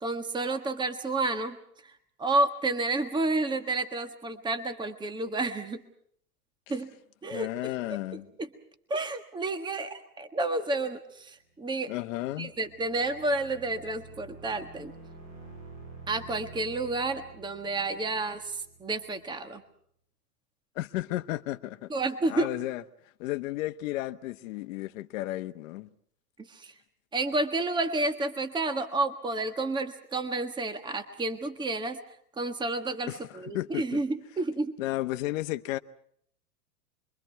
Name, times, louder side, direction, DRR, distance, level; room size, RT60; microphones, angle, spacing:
voice 1, 0.0-1.6 2.2-5.8 6.7-6.9 7.2-7.5 8.9-11.9 12.4-14.9 16.1-19.6 21.9-22.5 26.5-26.7 27.1-32.0 32.4-34.7, right 2 dB, 10° right, 1.5 m, -30 dB
voice 2, 7.3-8.3 11.9-12.5 20.7-21.9 22.3-22.8 23.2-25.9 33.1-34.0 34.8-35.8, left 16 dB, 55° left, 1.3 m, -33 dB
sound 1, 11.7-19.4, right 3 dB, 35° right, 7.9 m, -49 dB
29.5 x 23.0 x 4.6 m
hypercardioid pair, 130°, 47 cm